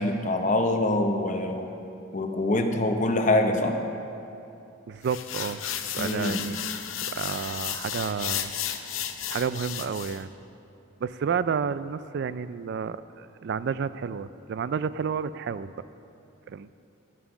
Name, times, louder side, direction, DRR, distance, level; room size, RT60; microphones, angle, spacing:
voice 1, 0.0-1.7 2.1-3.8 6.0-6.4, left 2 dB, 35° left, 5 dB, 0.8 m, -25 dB
voice 2, 4.9-5.6 5.9-6.6 7.0-8.5 8.8-8.9 9.3-10.3 11.0-15.7 16.5-16.7, right 6 dB, 55° right, 15 dB, 0.3 m, -30 dB
sound 1, 5.0-10.2, left 10 dB, 70° left, 0.6 m, -33 dB
12.5 x 7.6 x 6.0 m, 2.7 s
head